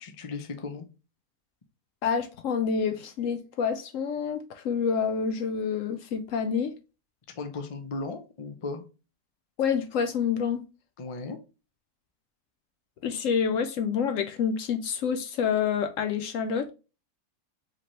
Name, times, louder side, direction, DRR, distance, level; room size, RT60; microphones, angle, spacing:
voice 1, 0.0-0.9 7.4-8.8 11.0-11.4, left 3 dB, 45° left, 0.4 m, -36 dB
voice 2, 2.0-6.7 9.6-10.6 13.0-16.7, left 6 dB, 70° left, 0.8 m, -28 dB
5.0 x 3.0 x 2.9 m
omnidirectional pair, 1.6 m